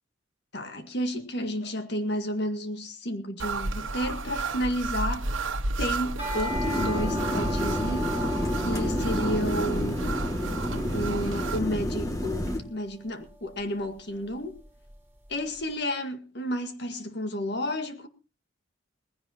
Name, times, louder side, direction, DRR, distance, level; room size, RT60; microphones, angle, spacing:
voice 1, 0.5-5.3 5.8-8.1 8.6-10.1 10.9-14.6 15.3-18.1, equal, 55° left, 1.9 m, -31 dB
sound 1, 3.4-11.6, right 3 dB, 75° right, 1.3 m, -32 dB
sound 2, 6.2-15.4, left 1 dB, 10° right, 6.3 m, -40 dB
sound 3, 6.5-12.6, left 1 dB, 15° left, 2.1 m, -29 dB
19.5 x 16.0 x 2.9 m
head